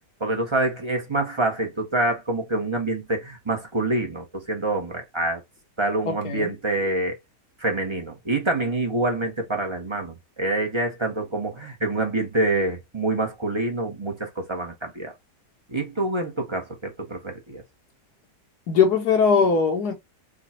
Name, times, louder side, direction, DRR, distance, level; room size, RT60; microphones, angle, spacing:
voice 1, 0.2-5.4 5.8-7.2 7.6-15.1 15.7-17.6, right 2 dB, 20° right, 0.8 m, -26 dB
voice 2, 6.1-6.5 18.7-19.9, left 5 dB, 65° left, 1.5 m, -20 dB
4.9 x 2.4 x 4.2 m
omnidirectional pair, 1.9 m